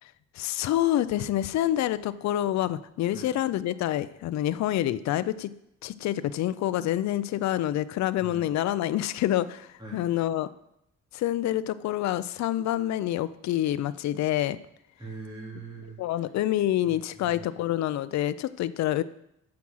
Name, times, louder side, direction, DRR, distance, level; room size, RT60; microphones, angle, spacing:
voice 1, 0.4-5.5 5.8-10.5 11.1-14.6 16.0-19.0, left 13 dB, 65° left, 14 dB, 0.4 m, -27 dB
voice 2, 15.0-16.0 16.9-17.4, right 3 dB, 15° right, -5 dB, 3.6 m, -42 dB
9.4 x 6.0 x 6.2 m, 0.81 s
wide cardioid pair, 170°, 30 cm